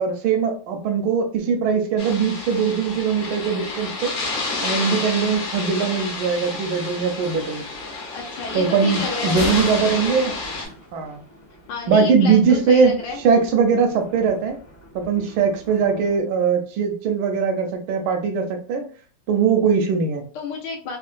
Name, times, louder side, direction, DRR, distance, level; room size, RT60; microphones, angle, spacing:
voice 1, 0.0-4.1 4.6-7.6 8.5-10.3 10.9-11.2 11.9-12.9 13.2-14.6 14.9-18.8 19.3-20.2, right 5 dB, 80° right, 5 dB, 1.4 m, -20 dB
sound 1, 2.0-10.6, left 3 dB, 60° left, 1.2 m, -30 dB
voice 2, 8.1-9.5 11.7-13.2 20.3-21.0, left 4 dB, 75° left, 0 dB, 1.0 m, -30 dB
Thunder, 9.0-16.2, equal, 15° left, 0.6 m, -39 dB
3.6 x 2.3 x 2.4 m, 0.42 s
omnidirectional pair, 2.4 m